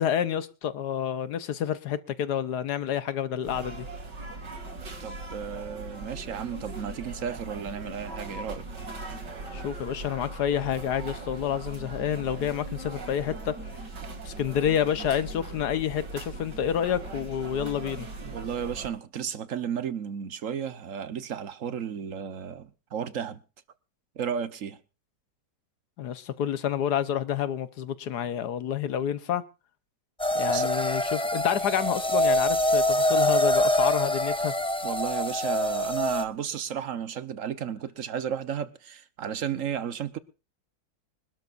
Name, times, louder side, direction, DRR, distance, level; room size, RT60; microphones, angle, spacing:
voice 1, 0.0-3.8 9.5-13.5 14.2-18.1 26.0-29.4 30.3-34.5, left 9 dB, 70° left, 1.5 m, -29 dB
sound 1, 3.4-18.9, right 3 dB, 80° right, 3.2 m, -39 dB
voice 2, 5.0-8.7 18.2-23.4 24.2-24.8 30.5-30.7 34.8-40.2, right 8 dB, 55° right, 1.3 m, -33 dB
sound 2, 30.2-36.2, left 1 dB, 5° left, 0.9 m, -25 dB
25.0 x 12.5 x 2.5 m
omnidirectional pair, 1.9 m